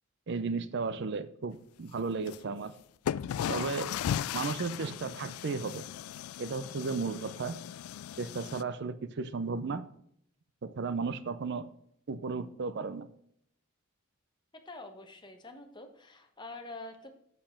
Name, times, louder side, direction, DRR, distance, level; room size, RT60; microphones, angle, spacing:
voice 1, 0.3-2.7 3.5-3.9 4.3-5.8 6.4-7.6 8.2-9.9 10.6-11.7 12.1-13.1, right 4 dB, 55° right, 14 dB, 0.5 m, -34 dB
sound 1, 2.3-2.4 3.1-8.6, left 9 dB, 90° left, 0.3 m, -37 dB
voice 2, 14.6-17.1, left 2 dB, 20° left, 5 dB, 1.2 m, -46 dB
7.6 x 6.8 x 5.7 m, 0.70 s
head